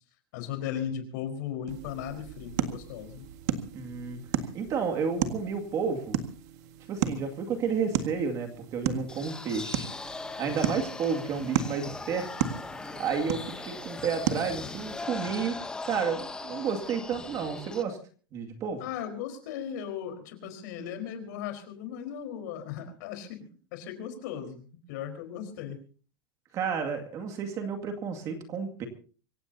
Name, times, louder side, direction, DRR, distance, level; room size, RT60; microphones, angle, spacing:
voice 1, 0.3-3.3 18.8-23.4 23.7-25.8, left 9 dB, 55° left, 7 dB, 4.4 m, -37 dB
sound 1, 1.7-15.1, right 10 dB, 50° right, 1.8 m, -35 dB
voice 2, 3.7-4.2 4.5-6.2 6.9-9.9 10.4-12.3 13.0-15.6 15.8-18.0 18.3-18.8 26.5-28.9, right 6 dB, 25° right, 4 dB, 2.2 m, -31 dB
sound 2, 9.1-17.8, left 3 dB, 5° left, 0.8 m, -39 dB
25.5 x 16.0 x 2.8 m, 0.39 s
supercardioid pair, 165°, 12 cm